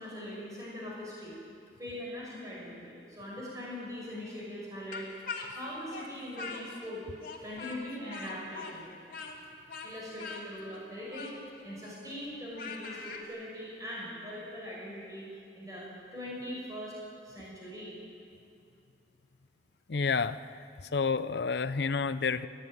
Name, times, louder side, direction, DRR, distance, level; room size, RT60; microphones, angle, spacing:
voice 1, 0.0-1.3 1.8-5.1 5.5-7.1 7.4-8.9 9.8-11.3 11.6-15.3 15.5-16.9 17.2-17.9, left 1 dB, 20° right, -6 dB, 6.1 m, -41 dB
Speech, 4.9-6.9 7.2-13.2, left 4 dB, 50° left, 2.7 m, -42 dB
voice 2, 19.9-20.4 20.8-22.5, left 5 dB, 70° left, 14 dB, 0.6 m, -29 dB
21.0 x 14.5 x 9.2 m, 2.6 s
head